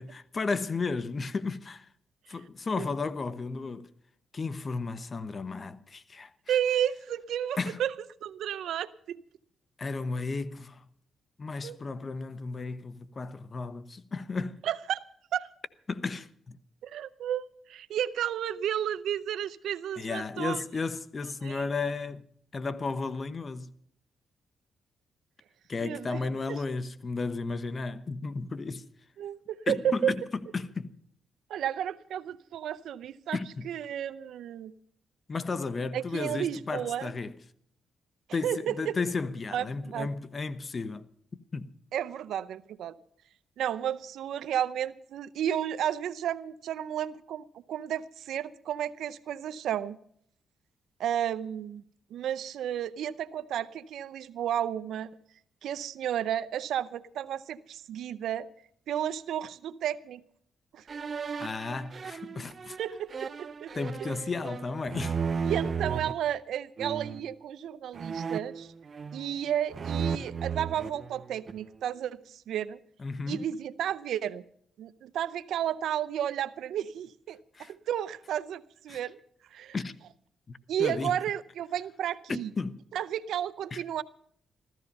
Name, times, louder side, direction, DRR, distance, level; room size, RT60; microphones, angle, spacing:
voice 1, 0.0-1.9 2.3-3.9 4.3-6.6 7.6-7.8 9.8-10.8 11.4-14.6 15.9-16.6 20.0-22.2 22.5-23.7 25.7-28.8 29.7-30.2 30.5-30.9 33.3-33.7 35.3-37.3 38.3-41.1 41.5-41.7 61.4-62.8 63.7-65.2 73.0-73.4 77.5-77.7 78.9-79.0 79.7-79.9 80.5-81.2 82.3-82.8 83.7-83.8, left 4 dB, 40° left, 1.0 m, -34 dB
voice 2, 6.5-7.9 8.2-9.2 11.6-11.8 14.6-15.0 15.3-15.5 16.8-20.6 21.4-21.6 25.8-26.2 26.5-26.6 29.2-30.1 31.5-33.4 33.6-34.7 35.9-37.1 38.4-39.0 39.5-40.1 41.9-43.0 43.6-50.0 51.0-51.8 52.1-55.1 55.6-58.5 58.9-60.2 60.7-60.8 62.8-63.7 64.0-64.1 65.5-68.7 69.1-72.8 73.3-74.4 74.8-79.2 79.5-79.8 80.7-82.5 82.9-84.0, right 10 dB, 80° right, 0.7 m, -32 dB
sound 1, 60.9-66.1 66.8-67.3 67.9-69.4 69.7-71.7, right 6 dB, 50° right, 0.8 m, -35 dB
15.0 x 14.0 x 5.4 m
cardioid pair, 70°, 0 cm